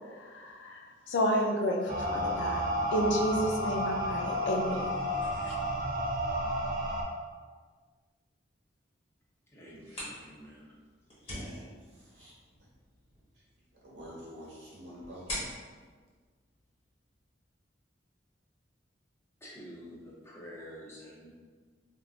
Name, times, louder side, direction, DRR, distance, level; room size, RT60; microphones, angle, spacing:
voice 1, 0.1-0.8 1.1-2.6 2.9-5.0 5.4-5.6, equal, 80° left, 1 dB, 0.4 m, -31 dB
sound 1, 1.9-7.0, equal, 45° right, 0.4 m, -31 dB
voice 2, 9.5-10.7 19.4-21.4, equal, 15° left, -5 dB, 0.6 m, -48 dB
sound 2, 9.6-17.2, left 1 dB, 30° left, 1.0 m, -45 dB
voice 3, 11.3-12.3 13.8-15.3, equal, 70° right, -6 dB, 1.1 m, -48 dB
3.6 x 2.4 x 2.4 m, 1.5 s
head